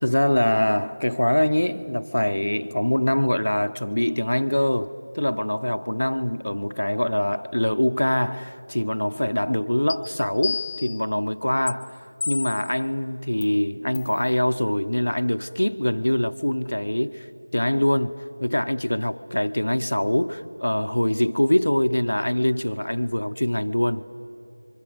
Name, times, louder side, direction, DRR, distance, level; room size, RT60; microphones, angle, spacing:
voice 1, 0.0-17.3 17.5-24.0, left 1 dB, 85° left, 0.9 m, -24 dB
sound 1, 9.9-10.0 10.4-11.0 11.7-11.8 12.2-12.7 13.4-13.5 13.9-14.2, left 4 dB, 5° left, 0.7 m, -30 dB
30.0 x 25.0 x 7.9 m
figure-of-eight pair, 175°, 0 cm